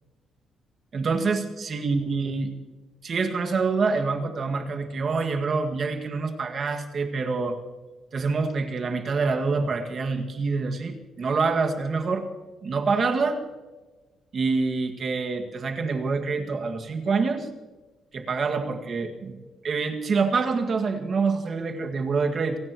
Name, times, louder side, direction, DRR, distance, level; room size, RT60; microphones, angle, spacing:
voice 1, 0.9-2.5 3.0-7.6 8.1-12.3 12.6-13.4 14.3-17.5 18.1-19.4 19.6-22.6, right 4 dB, 40° right, 4 dB, 2.0 m, -26 dB
27.0 x 17.5 x 3.1 m, 1.3 s
cardioid pair, 135°, 0 cm